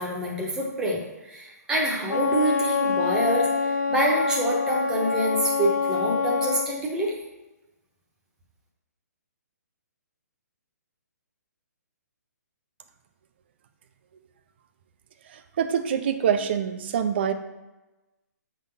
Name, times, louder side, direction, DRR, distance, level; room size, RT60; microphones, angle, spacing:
voice 1, 0.0-7.2, right 1 dB, 5° right, -2 dB, 0.9 m, -26 dB
Wind instrument woodwind instrument, 2.1-6.7, left 5 dB, 75° left, 0.7 m, -26 dB
voice 2, 15.2-17.3, right 8 dB, 35° right, 8 dB, 0.5 m, -25 dB
7.1 x 3.8 x 5.5 m, 1.1 s
hypercardioid pair, 165°, 9 cm